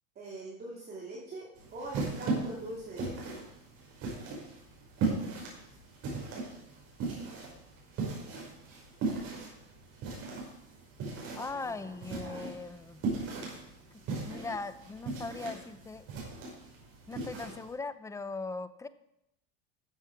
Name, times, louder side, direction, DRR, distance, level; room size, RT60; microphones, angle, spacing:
voice 1, 0.1-3.3 11.5-12.5, right 2 dB, 35° right, -4 dB, 2.7 m, -43 dB
sound 1, 1.5-17.7, right 3 dB, 55° right, 5.2 m, -38 dB
voice 2, 11.4-13.0 14.2-16.0 17.1-18.9, left 3 dB, 10° left, 13 dB, 0.6 m, -39 dB
13.0 x 7.6 x 4.7 m, 0.83 s
supercardioid pair, 110°, 29 cm